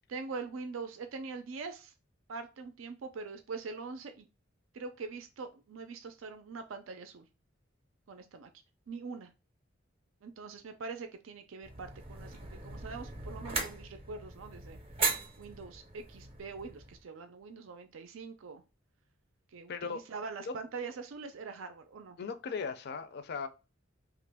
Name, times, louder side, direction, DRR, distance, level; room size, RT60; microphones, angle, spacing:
voice 1, 0.1-1.9 2.3-4.3 4.7-7.2 8.1-8.5 8.9-9.3 10.2-14.8 15.4-18.6 19.5-22.2, right 4 dB, 85° right, 0.4 m, -43 dB
sound 1, 11.6-17.0, right 4 dB, 30° right, 0.5 m, -38 dB
voice 2, 19.7-20.0 20.4-20.6 22.2-23.5, left 5 dB, 55° left, 0.4 m, -37 dB
2.9 x 2.4 x 3.4 m
head